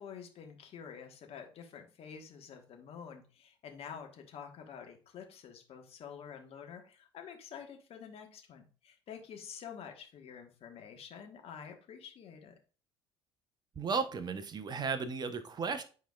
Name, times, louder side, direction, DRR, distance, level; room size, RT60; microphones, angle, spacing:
voice 1, 0.0-12.5, left 7 dB, 45° left, 4 dB, 1.2 m, -48 dB
voice 2, 13.8-15.8, right 5 dB, 30° right, 11 dB, 0.8 m, -34 dB
9.4 x 4.3 x 2.3 m, 0.38 s
figure-of-eight pair, 60°, 14 cm